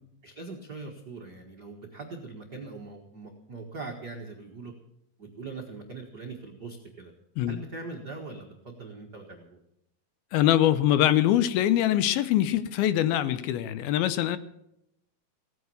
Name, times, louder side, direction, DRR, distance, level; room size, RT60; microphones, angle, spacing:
voice 1, 0.2-4.7 5.2-7.1 7.5-9.6, right 3 dB, 85° right, 1 dB, 0.9 m, -41 dB
voice 2, 10.3-14.4, left 12 dB, 80° left, 14 dB, 2.5 m, -23 dB
17.0 x 9.3 x 7.0 m, 0.79 s
omnidirectional pair, 4.5 m